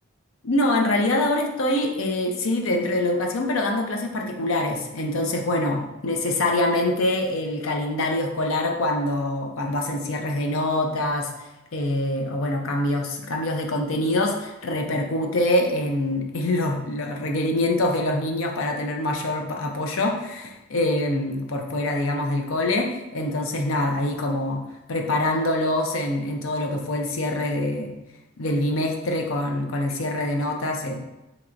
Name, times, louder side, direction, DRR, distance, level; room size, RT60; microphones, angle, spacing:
voice 1, 0.4-24.6 24.9-27.9 28.4-30.9, left 1 dB, 75° left, 2 dB, 0.6 m, -25 dB
4.4 x 2.9 x 2.5 m, 0.99 s
head